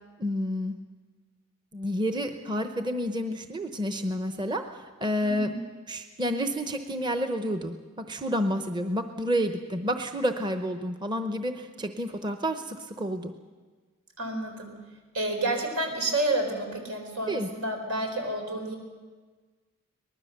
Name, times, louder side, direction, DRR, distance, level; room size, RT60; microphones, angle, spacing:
voice 1, 0.2-0.8 1.7-5.5 5.9-13.3 17.3-17.5, equal, 20° right, 7 dB, 0.8 m, -30 dB
voice 2, 5.2-5.6 14.2-14.7 15.1-18.7, right 1 dB, 90° right, 3 dB, 4.6 m, -30 dB
24.0 x 20.0 x 6.6 m, 1.4 s
head